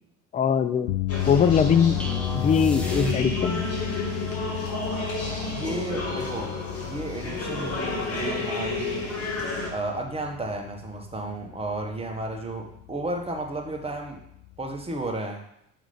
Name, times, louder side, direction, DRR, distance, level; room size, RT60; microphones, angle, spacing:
voice 1, 0.3-0.9 1.3-2.0 2.3-3.6, left 7 dB, 20° left, 12 dB, 0.4 m, -21 dB
sound 1, 0.9-15.1, left 16 dB, 80° left, 0.5 m, -34 dB
sound 2, 1.1-9.7, left 3 dB, 35° left, 2.0 m, -31 dB
sound 3, 2.0-3.7, equal, 5° left, 1.2 m, -31 dB
voice 2, 5.5-6.5 6.8-9.0 9.7-14.2 14.6-15.4, right 2 dB, 15° right, 1 dB, 1.6 m, -33 dB
6.8 x 3.7 x 5.1 m, 0.75 s
hypercardioid pair, 65°, 39 cm